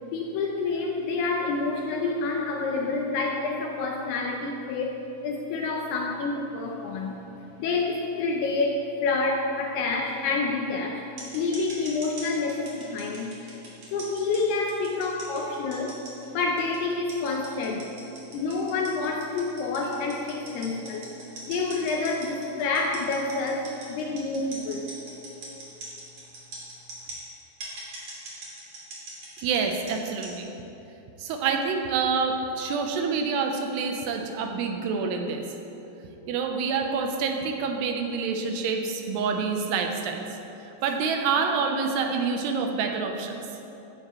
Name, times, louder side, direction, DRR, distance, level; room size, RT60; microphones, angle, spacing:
voice 1, 0.1-7.2 7.6-11.0 11.3-13.3 13.9-16.0 16.3-17.9 18.3-21.1 21.5-24.9, left 3 dB, 75° left, 0 dB, 2.7 m, -28 dB
sound 1, 11.2-27.2 27.6-30.3, right 2 dB, 40° right, 3.4 m, -41 dB
voice 2, 29.4-30.5 31.2-35.4 36.3-40.2 40.6-43.4, right 5 dB, 75° right, 4 dB, 2.9 m, -27 dB
15.5 x 12.5 x 3.2 m, 2.9 s
omnidirectional pair, 5.1 m